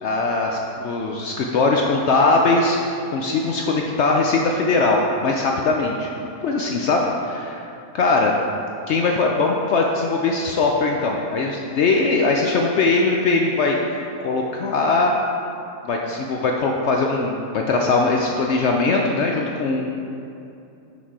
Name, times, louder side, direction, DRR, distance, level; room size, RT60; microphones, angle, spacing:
voice 1, 0.0-6.1 6.4-7.6 7.9-8.3 8.9-15.1 15.8-19.9, left 3 dB, 75° left, 0 dB, 0.6 m, -21 dB
6.2 x 5.8 x 4.7 m, 2.7 s
omnidirectional pair, 1.7 m